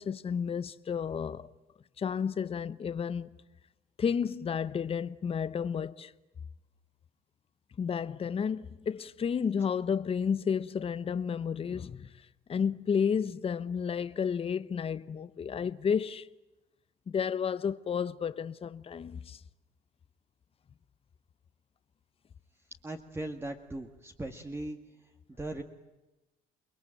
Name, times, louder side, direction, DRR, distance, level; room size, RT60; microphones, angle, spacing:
voice 1, 0.0-1.5 2.0-3.3 4.0-6.1 7.8-16.3 17.1-19.4, left 7 dB, 35° left, 1.0 m, -32 dB
voice 2, 22.8-24.8 25.4-25.6, right 1 dB, 15° right, 1.9 m, -38 dB
29.0 x 21.5 x 9.0 m
cardioid pair, 110°, 17 cm